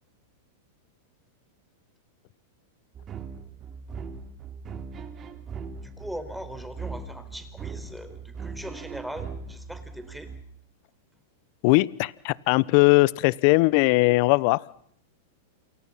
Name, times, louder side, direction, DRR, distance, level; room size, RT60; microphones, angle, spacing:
sound 1, 3.0-10.4, right 5 dB, 30° right, 3.3 m, -39 dB
voice 1, 5.8-10.3, equal, ahead, 9 dB, 4.6 m, -40 dB
voice 2, 11.6-14.6, left 23 dB, 55° left, 22 dB, 1.0 m, -20 dB
28.5 x 28.0 x 5.8 m, 0.68 s
hypercardioid pair, 115°, 0 cm